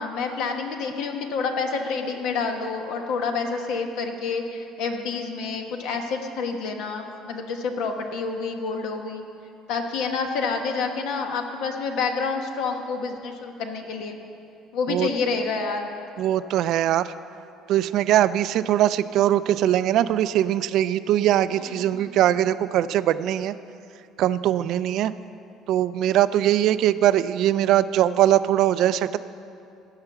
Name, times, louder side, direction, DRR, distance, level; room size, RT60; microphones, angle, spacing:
voice 1, 0.0-9.2 9.7-14.2 14.7-15.9 21.9-22.1, left 4 dB, 75° left, 4 dB, 1.2 m, -28 dB
voice 2, 16.2-17.1 17.7-23.5 24.2-25.1 25.7-29.2, right 12 dB, 65° right, 14 dB, 0.3 m, -21 dB
15.5 x 5.8 x 6.8 m, 2.6 s
cardioid pair, 125°, 0 cm